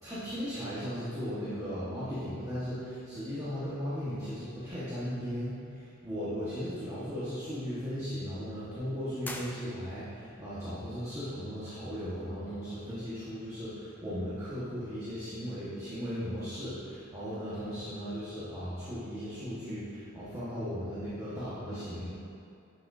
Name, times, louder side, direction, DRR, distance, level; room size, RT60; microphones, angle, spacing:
voice 1, 0.0-22.2, equal, 15° right, -12 dB, 1.5 m, -37 dB
sound 1, 9.2-10.3, left 1 dB, 10° left, 0.4 m, -43 dB
11.0 x 6.4 x 2.7 m, 2.5 s
head